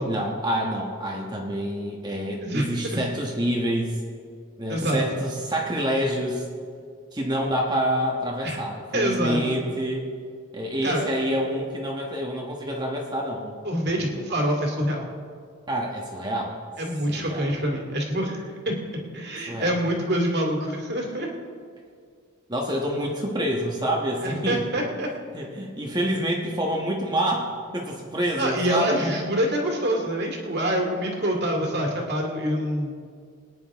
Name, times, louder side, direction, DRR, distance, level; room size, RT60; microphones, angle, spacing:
voice 1, 0.0-4.0 4.6-6.4 7.1-10.1 10.5-13.5 15.7-16.6 17.1-17.6 19.5-19.8 22.5-24.7 25.3-29.2, equal, 20° right, -1 dB, 1.3 m, -27 dB
voice 2, 2.4-3.0 4.7-5.2 8.4-8.6 8.9-9.4 10.8-11.0 13.7-15.1 16.8-21.3 24.2-25.1 28.4-32.9, equal, 50° right, 0 dB, 2.3 m, -26 dB
23.5 x 9.9 x 3.6 m, 2.2 s
head